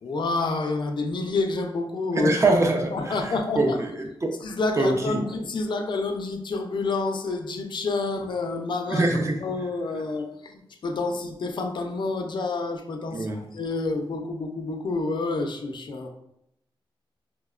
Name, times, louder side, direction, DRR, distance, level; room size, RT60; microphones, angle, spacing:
voice 1, 0.0-2.3 2.9-3.8 4.4-9.0 9.4-16.1, left 3 dB, 55° left, 4 dB, 0.4 m, -28 dB
voice 2, 2.1-4.3 4.7-5.2 8.9-9.4 13.1-13.4, right 2 dB, 30° right, 2 dB, 0.5 m, -24 dB
4.2 x 2.1 x 2.3 m, 0.81 s
wide cardioid pair, 130°, 9 cm